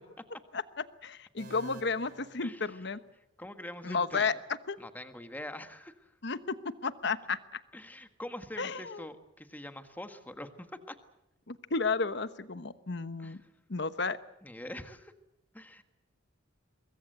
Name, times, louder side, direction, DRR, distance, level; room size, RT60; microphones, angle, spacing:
voice 1, 1.0-3.0 3.8-4.3 4.7-4.8 6.2-7.6 8.6-9.0 11.5-13.4 13.7-14.2, left 4 dB, 60° left, 13 dB, 1.1 m, -32 dB
sound 1, 1.4-3.3, right 2 dB, 45° right, 3.1 m, -52 dB
voice 2, 2.4-2.9 3.4-4.3 4.8-6.2 7.7-11.0 13.2-13.5 14.4-15.1 15.5-15.8, left 1 dB, 10° left, 8 dB, 1.5 m, -44 dB
24.0 x 21.5 x 8.0 m, 0.87 s
head